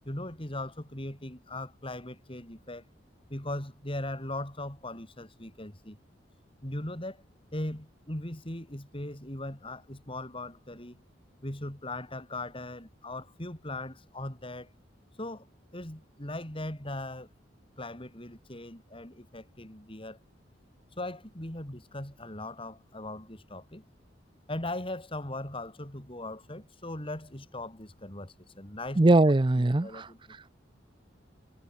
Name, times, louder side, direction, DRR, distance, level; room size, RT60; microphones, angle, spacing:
voice 1, 0.0-2.8 3.3-6.0 6.6-7.2 7.5-11.0 11.4-14.7 15.2-15.5 15.7-17.3 17.8-20.2 21.0-23.8 24.5-29.1 29.6-30.2, left 1 dB, 30° left, 4.1 m, -39 dB
voice 2, 29.0-30.5, right 2 dB, 25° right, 0.6 m, -22 dB
head